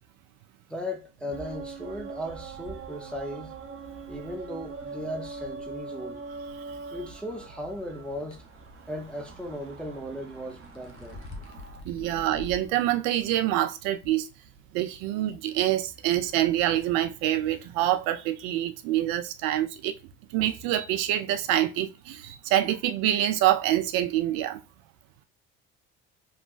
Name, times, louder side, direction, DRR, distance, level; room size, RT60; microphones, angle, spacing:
voice 1, 0.7-3.5 4.1-6.2 6.9-8.5 8.9-11.2 12.0-12.1, equal, 5° left, 0.6 m, -37 dB
sound 1, 1.3-11.8, right 4 dB, 35° right, 0.7 m, -42 dB
sound 2, 8.1-8.4 10.3-12.7 13.2-13.3 14.0-14.1, left 3 dB, 55° left, 0.8 m, -44 dB
voice 2, 11.8-14.3 14.7-20.0 20.3-24.6, right 13 dB, 70° right, 0.6 m, -26 dB
3.1 x 2.1 x 2.4 m
hypercardioid pair, 70°, 36 cm